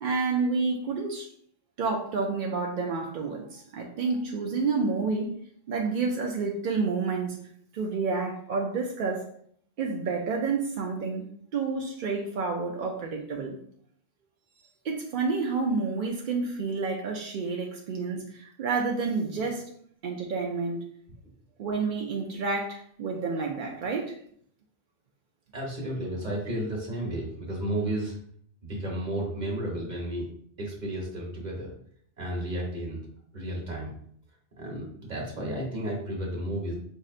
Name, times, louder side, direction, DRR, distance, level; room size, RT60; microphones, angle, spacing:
voice 1, 0.0-1.3 1.8-5.3 5.7-7.4 7.7-9.2 9.8-11.2 11.5-13.6 14.8-19.7 20.0-20.8 21.6-24.1, right 4 dB, 65° right, 0 dB, 0.5 m, -29 dB
voice 2, 25.5-28.2 28.6-30.3 30.6-31.7 32.2-33.0 33.3-33.9 34.6-36.7, right 1 dB, 40° right, -2 dB, 1.1 m, -32 dB
5.2 x 2.7 x 2.4 m, 0.62 s
omnidirectional pair, 1.3 m